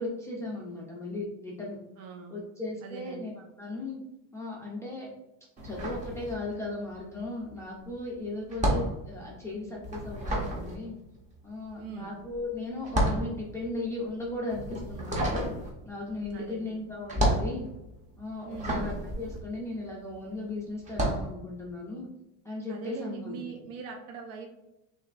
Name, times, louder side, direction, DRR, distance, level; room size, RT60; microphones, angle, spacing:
voice 1, 0.0-1.8 2.3-3.3 3.6-4.0 4.3-5.1 5.6-11.0 11.4-15.5 15.9-17.7 18.2-22.1 22.4-23.4, left 2 dB, 10° left, -5 dB, 0.3 m, -37 dB
voice 2, 2.0-2.4 2.8-3.3 11.8-12.1 16.3-16.8 18.5-18.8 22.7-24.5, right 5 dB, 70° right, 2 dB, 0.6 m, -42 dB
fridge-open-close, 5.6-6.8 7.1-20.3 20.8-21.3, right 1 dB, 20° right, 0.7 m, -31 dB
6.2 x 2.6 x 2.4 m, 0.94 s
cardioid pair, 160°, 37 cm